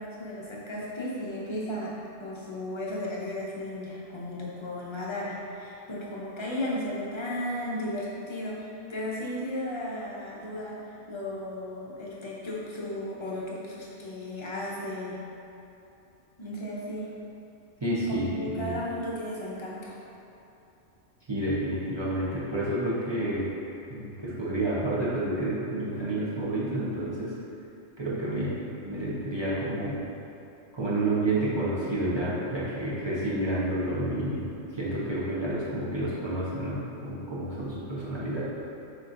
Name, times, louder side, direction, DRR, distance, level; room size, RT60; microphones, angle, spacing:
voice 1, 0.0-1.9 2.2-15.2 16.4-17.1 18.1-20.0, left 1 dB, 30° left, -5 dB, 0.6 m, -35 dB
voice 2, 17.8-18.7 21.3-23.5 23.9-27.3 28.0-30.0 30.7-34.4 34.7-38.4, right 1 dB, 25° right, -9 dB, 0.8 m, -29 dB
6.6 x 3.0 x 2.6 m, 2.8 s
omnidirectional pair, 1.2 m